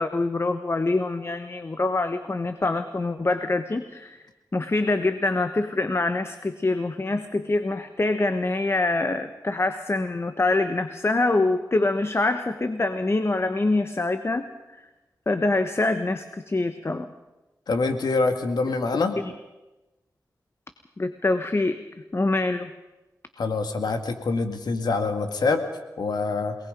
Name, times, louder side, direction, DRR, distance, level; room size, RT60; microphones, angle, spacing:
voice 1, 0.0-4.2 4.5-14.4 15.3-17.1 19.2-19.3 21.0-21.8 22.1-22.7, left 2 dB, 40° left, 9 dB, 1.2 m, -25 dB
voice 2, 17.7-19.2 23.4-25.6 26.0-26.6, left 3 dB, 85° left, 7 dB, 2.0 m, -25 dB
28.5 x 19.0 x 5.3 m, 1.1 s
cardioid pair, 55°, 7 cm